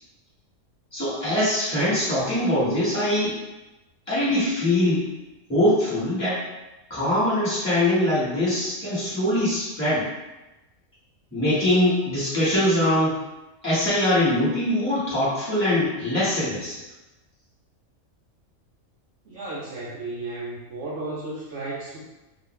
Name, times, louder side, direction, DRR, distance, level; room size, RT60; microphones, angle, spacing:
voice 1, 0.9-3.4 4.1-5.1 5.5-6.4 6.9-10.1 11.3-13.1 13.6-16.8, left 1 dB, 5° left, -11 dB, 1.2 m, -22 dB
voice 2, 19.3-22.0, right 2 dB, 70° right, -8 dB, 0.8 m, -34 dB
2.4 x 2.4 x 3.1 m, 1.0 s
omnidirectional pair, 1.4 m